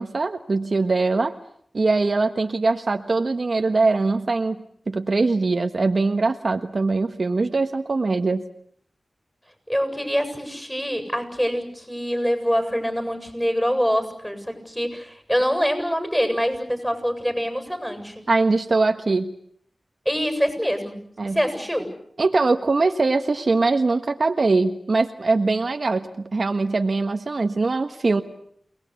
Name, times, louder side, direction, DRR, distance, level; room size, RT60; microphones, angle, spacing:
voice 1, 0.0-1.3 1.7-4.6 4.9-8.4 18.3-19.3 21.2-21.4 22.2-28.2, right 3 dB, 60° right, 6 dB, 1.4 m, -22 dB
voice 2, 9.7-18.2 20.0-21.0 21.3-21.9, equal, 5° left, 7 dB, 8.0 m, -25 dB
29.0 x 19.5 x 8.3 m, 0.66 s
cardioid pair, 50°, 0 cm